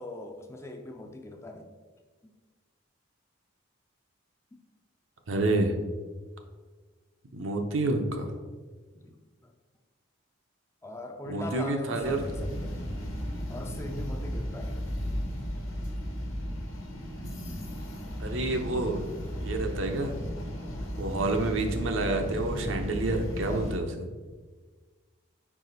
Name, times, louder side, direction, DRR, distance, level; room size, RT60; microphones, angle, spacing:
voice 1, 0.0-1.7 8.9-9.5 10.8-12.8 13.5-14.8 20.7-21.0 23.4-23.7, left 1 dB, 15° left, 4 dB, 0.4 m, -41 dB
voice 2, 5.3-5.7 7.3-8.3 11.3-12.2 18.2-19.0 19.4-20.2 21.0-23.9, right 2 dB, 75° right, 4 dB, 0.7 m, -28 dB
sound 1, 12.0-23.8, equal, 85° left, 1.2 m, -35 dB
4.9 x 4.8 x 3.9 m, 1.4 s
head